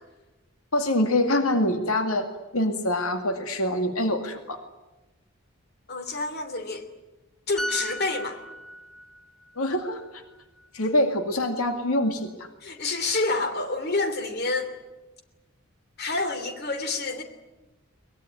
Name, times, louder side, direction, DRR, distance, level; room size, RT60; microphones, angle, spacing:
voice 1, 0.7-2.3 2.5-4.6 9.6-10.0 10.7-12.3, left 1 dB, 85° left, 6 dB, 2.1 m, -24 dB
voice 2, 5.9-6.9 7.5-8.4 12.6-14.7 16.0-17.2, left 3 dB, 50° left, 8 dB, 2.9 m, -28 dB
sound 1, 7.6-11.2 11.5-11.7, equal, 5° left, 1.8 m, -37 dB
23.0 x 21.0 x 9.6 m, 1.1 s
head